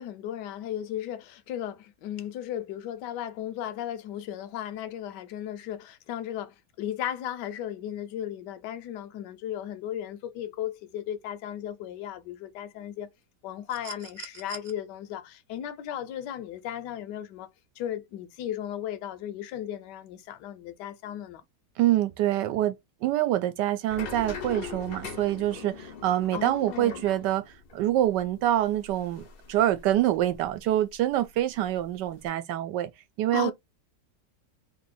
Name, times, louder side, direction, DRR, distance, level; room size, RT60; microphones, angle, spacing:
voice 1, 0.0-13.1 13.4-17.5 17.8-21.4 26.3-27.0 33.3-33.5, left 11 dB, 80° left, 1.3 m, -35 dB
sound 1, 13.7-14.7 16.2-16.4, right 6 dB, 70° right, 0.4 m, -43 dB
voice 2, 21.8-22.7 23.0-27.4 27.7-29.2 29.5-32.9 33.2-33.5, right 13 dB, 90° right, 1.2 m, -25 dB
sound 2, 23.9-30.6 30.9-32.3, left 5 dB, 60° left, 0.6 m, -42 dB
3.3 x 2.7 x 4.0 m
omnidirectional pair, 1.8 m